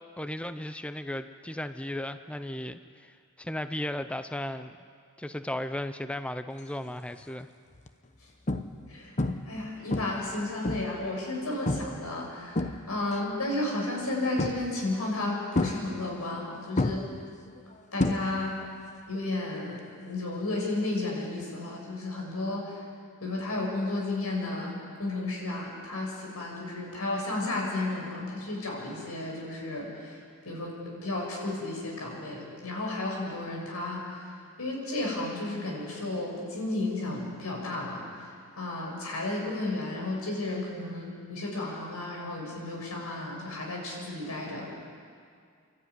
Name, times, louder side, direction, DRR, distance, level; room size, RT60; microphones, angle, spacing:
voice 1, 0.2-4.7 5.2-7.5, left 1 dB, 5° left, 10 dB, 0.5 m, -35 dB
sound 1, 6.8-7.2 7.7-7.9 8.5-8.9 9.2-9.6 9.9-11.0 11.7-12.0 12.3-13.2 14.4-14.9 15.5-16.4 16.8-18.7 18.9-19.3 21.4-21.5, left 2 dB, 35° left, 0.9 m, -30 dB
voice 2, 9.4-17.0 17.9-18.5 19.1-22.8 23.2-44.7, left 2 dB, 85° left, -1 dB, 6.7 m, -33 dB
29.0 x 13.0 x 9.6 m, 2.2 s
head